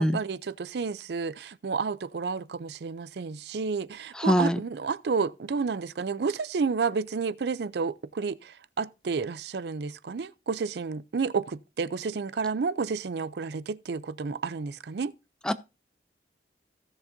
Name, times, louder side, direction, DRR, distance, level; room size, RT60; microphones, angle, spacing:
voice 1, 0.0-15.1, right 5 dB, 65° right, 0.4 m, -31 dB
voice 2, 4.1-4.6 15.4-15.5, equal, 5° left, 0.4 m, -23 dB
16.0 x 7.0 x 2.6 m
head